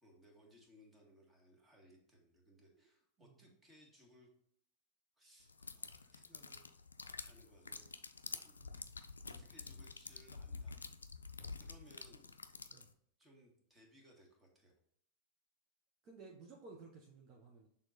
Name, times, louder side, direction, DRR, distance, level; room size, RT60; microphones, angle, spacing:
voice 1, 0.0-4.3 5.2-6.7 7.2-7.9 8.3-10.8 11.6-12.3 13.2-14.8, equal, 15° right, 0 dB, 1.8 m, -65 dB
sound 1, 5.5-12.9, left 4 dB, 80° left, 0.4 m, -49 dB
voice 2, 16.0-17.7, right 4 dB, 40° right, 0 dB, 1.0 m, -57 dB
6.3 x 3.8 x 4.1 m, 0.70 s
figure-of-eight pair, 90°, 0 cm